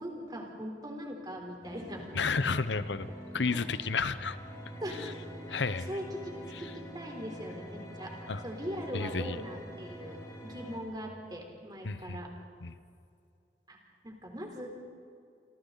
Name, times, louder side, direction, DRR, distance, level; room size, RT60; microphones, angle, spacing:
voice 1, 0.0-2.1 3.5-3.6 4.8-5.2 5.5-6.3 6.6-8.1 8.4-12.3 13.7-13.8 14.0-14.7, equal, 25° right, 1 dB, 3.9 m, -40 dB
sound 1, 1.6-10.8, equal, 20° left, 5.2 m, -46 dB
voice 2, 2.1-3.1 3.3-4.4 5.5-5.9 6.5-6.7 8.3-8.4 8.9-9.4 11.8-12.2 12.6-12.7, left 4 dB, 90° left, 13 dB, 0.9 m, -31 dB
28.0 x 26.5 x 4.1 m, 2.5 s
head